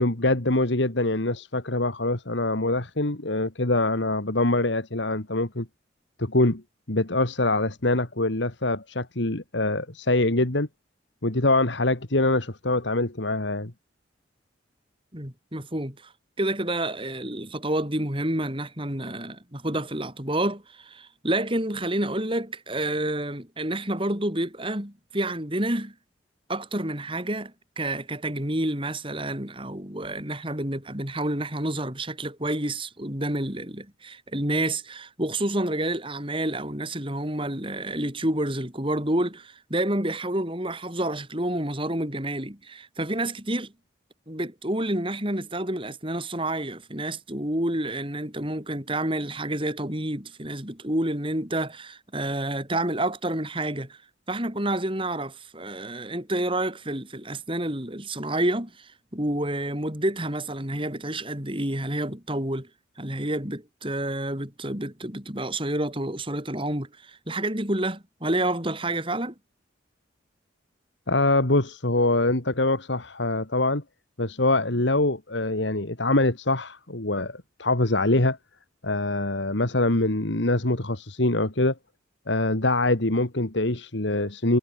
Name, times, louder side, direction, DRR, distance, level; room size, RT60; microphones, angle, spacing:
voice 1, 0.0-5.7 6.2-6.6 6.9-10.7 11.2-13.7 71.1-73.8 74.2-78.4 78.8-81.8 82.3-84.6, left 2 dB, 75° left, 2.3 m, -24 dB
voice 2, 15.1-16.1 16.4-26.0 26.5-43.7 44.3-54.0 54.3-62.7 63.0-69.3, right 1 dB, 25° right, 5.1 m, -29 dB
head